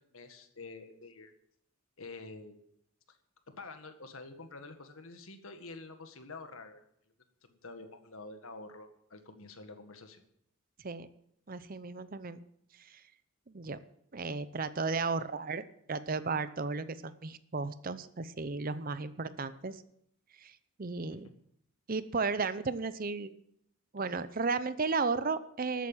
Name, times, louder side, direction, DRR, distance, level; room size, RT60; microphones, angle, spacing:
voice 1, 0.0-1.3 2.0-2.6 3.1-3.2 3.6-6.9 7.5-10.2 21.1-21.3, left 3 dB, 70° left, 7 dB, 1.7 m, -48 dB
voice 2, 11.5-12.4 12.8-13.0 13.5-13.8 14.1-15.6 15.9-19.8 20.4-21.3 21.9-23.3 23.9-25.9, right 4 dB, 40° right, 14 dB, 0.7 m, -34 dB
13.0 x 9.2 x 7.3 m, 0.73 s
head